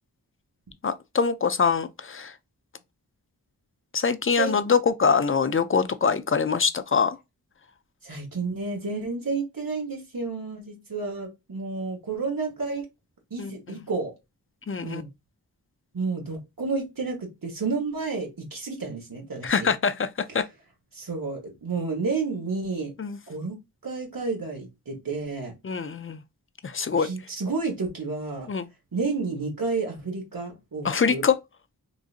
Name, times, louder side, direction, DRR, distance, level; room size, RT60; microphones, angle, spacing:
voice 1, 0.8-2.4 3.9-7.2 13.4-13.8 14.7-15.0 19.4-20.5 23.0-23.2 25.6-26.2 26.6-27.1 28.5-28.7 30.8-31.4, left 5 dB, 35° left, 0.4 m, -24 dB
voice 2, 8.0-12.9 13.3-14.1 14.8-15.1 15.9-19.7 20.9-22.9 23.3-23.6 23.8-25.5 26.9-28.5 28.9-31.2, right 4 dB, 65° right, 1.3 m, -31 dB
3.8 x 2.5 x 2.4 m
wide cardioid pair, 55°, 37 cm